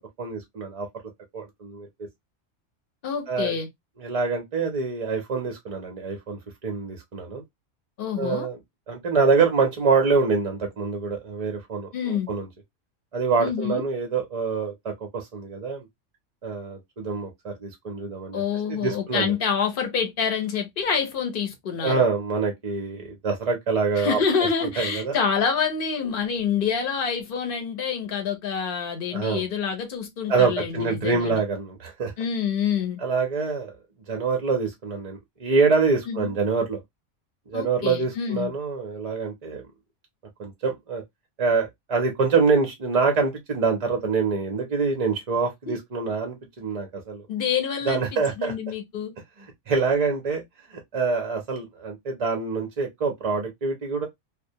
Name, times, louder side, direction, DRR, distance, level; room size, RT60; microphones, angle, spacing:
voice 1, 0.2-0.9 1.3-1.9 3.3-3.5 4.0-7.4 8.2-8.6 8.9-12.5 13.1-15.9 16.4-18.4 18.7-19.3 21.8-24.2 24.6-25.1 29.1-29.4 30.3-32.1 33.0-33.8 34.1-36.8 37.5-39.6 40.4-41.0 41.4-47.2 47.8-48.5 49.4-50.4 50.7-54.1, right 4 dB, 45° right, 0.5 m, -25 dB
voice 2, 3.0-3.7 8.0-8.5 11.9-12.3 13.4-13.8 18.3-22.0 24.0-31.4 32.2-33.0 36.1-36.3 37.5-38.5 45.7-45.8 47.3-49.2, left 6 dB, 50° left, 0.8 m, -27 dB
2.4 x 2.1 x 2.6 m
omnidirectional pair, 1.3 m